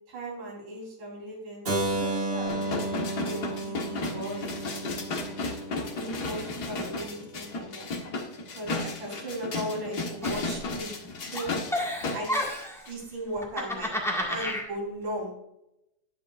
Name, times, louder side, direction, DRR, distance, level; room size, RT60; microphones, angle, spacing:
voice 1, 0.1-1.7 1.9-3.0 3.2-4.9 5.9-7.9 8.5-10.9 11.3-11.5 12.1-12.4 12.9-13.9 14.2-15.4, right 1 dB, 80° right, -2 dB, 5.1 m, -37 dB
Keyboard (musical), 1.6-7.5, right 2 dB, 35° right, 0.9 m, -33 dB
sound 1, 2.5-12.4 12.9-13.0, left 3 dB, 45° left, 1.4 m, -34 dB
Giggle, 10.2-11.1 11.3-12.8 13.4-14.7, left 1 dB, ahead, 0.7 m, -31 dB
11.0 x 9.8 x 2.5 m, 0.86 s
omnidirectional pair, 3.4 m